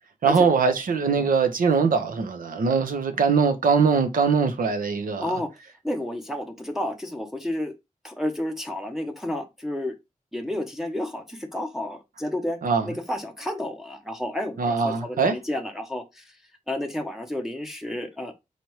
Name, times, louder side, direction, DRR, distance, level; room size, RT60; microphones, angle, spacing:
voice 1, 0.2-5.3 12.6-12.9 14.6-15.3, right 5 dB, 85° right, 0.9 m, -22 dB
voice 2, 5.8-7.7 8.0-9.9 10.3-16.4 16.7-18.3, left 1 dB, 5° right, 0.6 m, -31 dB
4.2 x 3.3 x 3.0 m
wide cardioid pair, 150°, 14 cm